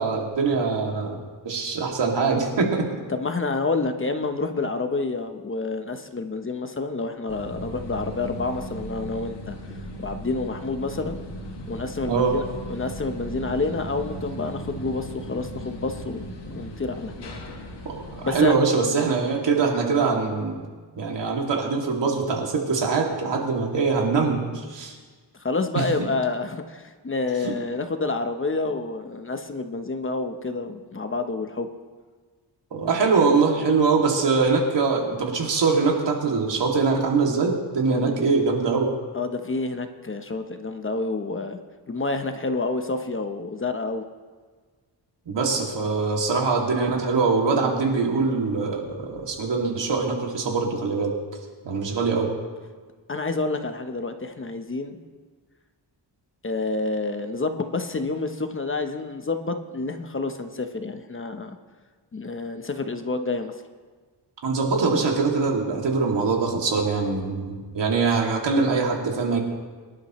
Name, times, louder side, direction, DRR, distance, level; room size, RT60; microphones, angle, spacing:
voice 1, 0.0-2.9 12.1-12.3 17.8-20.7 20.9-25.0 25.7-25.8 27.4-27.5 32.7-38.9 45.3-51.1 51.6-52.3 64.4-69.4, right 4 dB, 75° right, 0 dB, 2.6 m, -23 dB
voice 2, 3.1-9.5 10.0-11.2 11.7-12.4 12.7-17.3 18.2-18.5 25.4-31.7 37.9-38.1 39.1-41.6 41.9-44.0 53.1-55.0 56.4-61.6 62.1-63.5, left 3 dB, 30° left, 7 dB, 0.9 m, -28 dB
sound 1, 7.3-18.5, right 1 dB, 75° left, 2.1 m, -37 dB
24.0 x 11.5 x 3.1 m, 1.5 s
wide cardioid pair, 125°, 43 cm